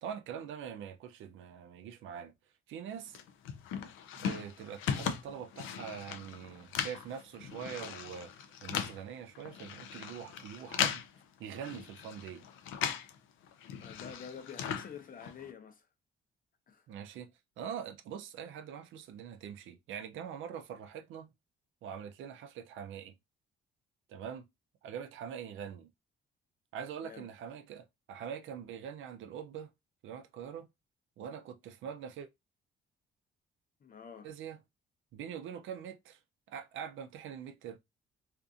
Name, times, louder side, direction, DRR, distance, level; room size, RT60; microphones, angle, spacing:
voice 1, 0.0-2.3 2.7-3.2 4.2-8.3 8.6-11.0 11.4-12.4 16.9-17.3 17.6-21.3 21.8-23.1 24.1-24.4 24.8-25.9 26.7-29.7 30.0-30.7 31.2-32.3 34.2-34.6 35.1-36.2 36.5-37.8, right 8 dB, 80° right, 0.5 m, -43 dB
sound 1, 3.1-13.2 13.4-15.5, left 8 dB, 85° left, 0.4 m, -38 dB
voice 2, 13.8-15.9 16.7-16.9 27.0-27.3 33.8-34.3, left 7 dB, 45° left, 0.7 m, -48 dB
2.5 x 2.5 x 2.3 m
cardioid pair, 90°, 20 cm